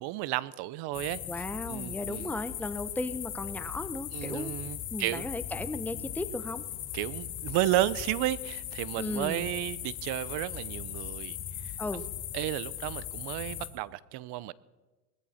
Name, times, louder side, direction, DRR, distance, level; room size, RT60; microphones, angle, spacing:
voice 1, 0.0-2.3 4.1-5.3 6.9-11.4 11.6-11.7 12.3-14.5, right 15 dB, 55° right, 19 dB, 0.8 m, -32 dB
sound 1, 0.9-13.7, left 11 dB, 55° left, 3.2 m, -39 dB
voice 2, 1.3-4.6 4.9-6.6 9.0-9.5 11.8-12.0, left 2 dB, 5° left, 11 dB, 0.7 m, -35 dB
20.0 x 14.5 x 4.3 m, 1.2 s
supercardioid pair, 105°, 47 cm